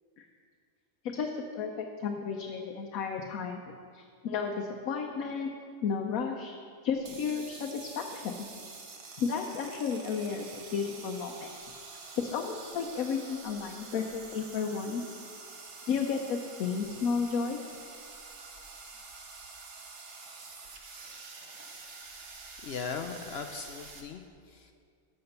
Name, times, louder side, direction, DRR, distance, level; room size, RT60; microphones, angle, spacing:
voice 1, 1.0-3.6 3.9-5.5 5.8-6.6 6.8-8.4 9.2-15.1 15.9-17.6, left 6 dB, 75° left, 2 dB, 1.2 m, -33 dB
sound 1, 7.0-24.0, right 4 dB, 55° right, 1.3 m, -47 dB
voice 2, 22.6-24.7, left 5 dB, 60° left, 7 dB, 0.7 m, -39 dB
12.5 x 6.9 x 5.4 m, 2.1 s
omnidirectional pair, 1.5 m